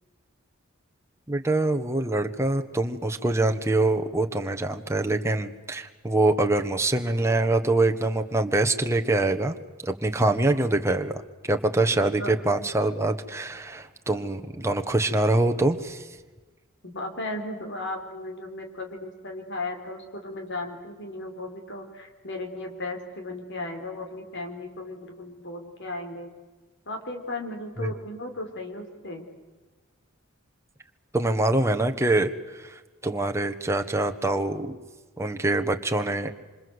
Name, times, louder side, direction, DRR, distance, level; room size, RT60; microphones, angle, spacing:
voice 1, 1.3-9.5 9.8-11.1 11.5-16.0 27.8-27.9 31.1-32.3 32.6-32.7 33.0-34.8 35.2-36.3, right 2 dB, 15° right, 5 dB, 1.4 m, -24 dB
voice 2, 16.8-26.3 26.9-29.3, left 2 dB, 55° left, 4 dB, 3.9 m, -36 dB
26.5 x 26.5 x 8.1 m, 1.3 s
head